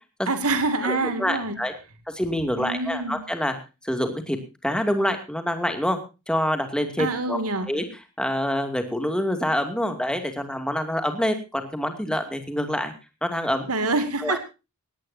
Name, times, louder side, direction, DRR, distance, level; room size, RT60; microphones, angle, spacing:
voice 1, 0.3-1.6 2.6-3.2 7.0-7.7 13.7-14.4, right 3 dB, 80° right, 9 dB, 2.5 m, -26 dB
voice 2, 0.8-1.7 2.1-3.5 3.8-4.4 4.6-6.0 6.3-7.4 7.7-7.8 8.2-12.9 13.2-13.7 14.2-14.4, equal, 5° left, 6 dB, 2.5 m, -26 dB
18.5 x 17.0 x 2.8 m, 0.30 s
head